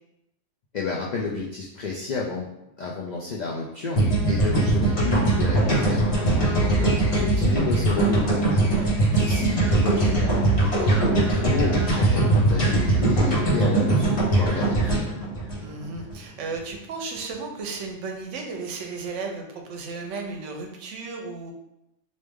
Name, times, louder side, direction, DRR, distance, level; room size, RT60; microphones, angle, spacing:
voice 1, 0.7-2.5 2.8-8.7 9.2-15.1, left 4 dB, 70° left, -3 dB, 0.4 m, -31 dB
sound 1, 4.0-16.2, right 2 dB, 50° left, 1.3 m, -21 dB
voice 2, 9.1-9.5 15.6-21.5, right 4 dB, 75° right, 2 dB, 0.9 m, -34 dB
3.1 x 2.6 x 3.4 m, 0.86 s
omnidirectional pair, 1.3 m